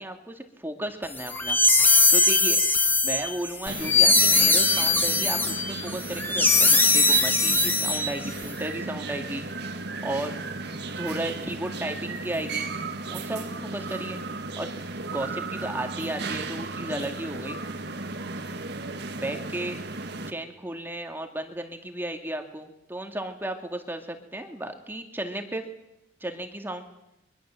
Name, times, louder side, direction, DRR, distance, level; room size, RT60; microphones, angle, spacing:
voice 1, 0.0-1.6 2.1-2.6 3.0-10.3 11.0-12.7 13.1-14.2 14.6-14.7 15.1-17.6 19.1-19.8 20.3-25.7 26.2-26.9, right 1 dB, 10° right, 5 dB, 2.2 m, -34 dB
sound 1, 1.2-8.4, left 2 dB, 10° left, 1.9 m, -21 dB
sound 2, 3.7-20.3, right 3 dB, 55° right, 1.9 m, -35 dB
23.5 x 23.0 x 7.7 m, 0.87 s
head